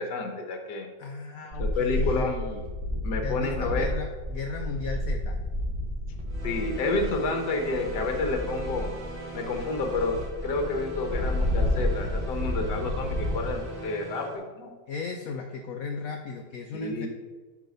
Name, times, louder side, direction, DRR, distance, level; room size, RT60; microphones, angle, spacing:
voice 1, 0.0-0.9 1.6-2.4 3.0-3.9 6.4-8.9 9.3-14.7 16.7-17.1, left 3 dB, 65° left, 4 dB, 1.6 m, -30 dB
voice 2, 1.0-2.7 3.2-5.4 14.9-17.1, left 5 dB, 80° left, 4 dB, 0.7 m, -35 dB
sound 1, 1.5-13.6, left 1 dB, 35° right, 1.0 m, -31 dB
sound 2, 6.3-14.4, right 2 dB, 90° right, 2.2 m, -40 dB
6.0 x 4.9 x 5.2 m, 1.4 s
omnidirectional pair, 2.0 m